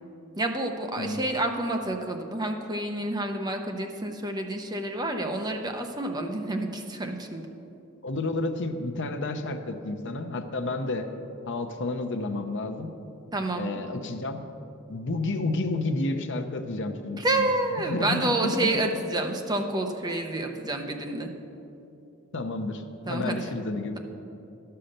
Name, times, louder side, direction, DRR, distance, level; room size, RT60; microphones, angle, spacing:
voice 1, 0.4-7.5 13.3-13.7 17.1-21.3 23.1-23.4, right 1 dB, 20° right, 4 dB, 0.7 m, -29 dB
voice 2, 8.0-11.1 11.5-12.9 13.6-14.4 14.9-17.5 17.9-18.2 18.4-18.7 22.3-24.0, left 2 dB, 55° left, 6 dB, 0.7 m, -30 dB
11.5 x 5.7 x 6.6 m, 2.7 s
head